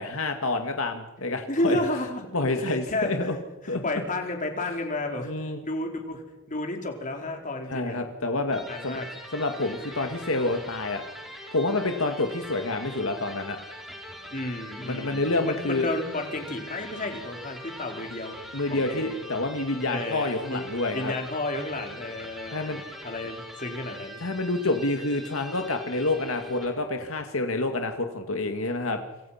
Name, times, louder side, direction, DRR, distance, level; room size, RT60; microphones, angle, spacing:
voice 1, 0.0-1.8 2.3-3.4 3.7-3.8 5.2-5.6 7.7-9.0 9.3-11.0 11.5-13.6 14.8-15.9 18.5-21.1 22.5-22.8 24.2-29.0, left 2 dB, 75° left, 5 dB, 2.1 m, -28 dB
voice 2, 1.5-2.2 2.6-3.4 3.6-6.2 6.5-8.0 8.7-9.1 14.3-18.4 18.7-19.2 19.9-22.7 23.0-24.2, left 2 dB, 40° left, 3 dB, 4.4 m, -32 dB
Electric guitar, 8.5-26.8, equal, ahead, 6.5 m, -42 dB
30.0 x 27.0 x 5.9 m, 1.1 s
head